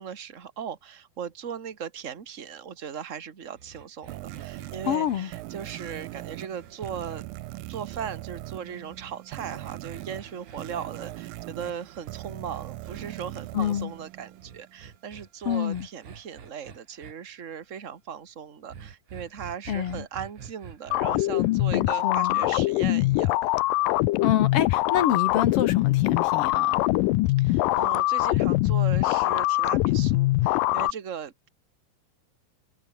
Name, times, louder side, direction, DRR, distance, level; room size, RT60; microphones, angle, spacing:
voice 1, 0.0-7.2 7.7-23.5 27.4-31.5, right 7 dB, 35° right, 1.3 m, -38 dB
sound 1, 3.6-8.0 8.9-13.0 14.4-17.1 18.7-21.5, right 7 dB, 60° right, 4.4 m, -47 dB
sound 2, 4.1-14.9, right 18 dB, 85° right, 2.5 m, -40 dB
voice 2, 4.9-5.3 13.5-13.9 15.4-15.9 19.7-20.0 21.7-22.4 24.2-26.8, left 10 dB, 60° left, 1.6 m, -27 dB
sound 3, 20.9-30.9, left 18 dB, 85° left, 2.3 m, -23 dB
omnidirectional pair, 4.1 m